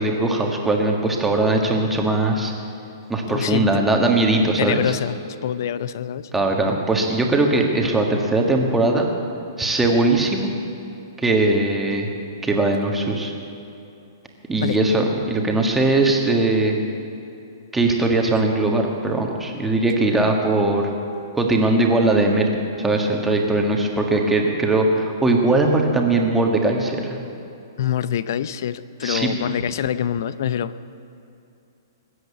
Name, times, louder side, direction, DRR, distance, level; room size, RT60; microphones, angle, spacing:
voice 1, 0.0-2.5 3.1-4.9 6.3-9.1 9.6-10.5 11.2-12.1 12.4-13.3 14.5-16.8 17.7-20.8 21.3-22.5 22.8-27.2 29.0-29.3, right 2 dB, 5° right, 1 dB, 1.6 m, -20 dB
voice 2, 3.3-3.8 4.6-6.3 14.6-14.8 27.8-30.7, left 10 dB, 60° left, 16 dB, 0.6 m, -25 dB
20.5 x 8.0 x 8.3 m, 2.7 s
hypercardioid pair, 150°, 2 cm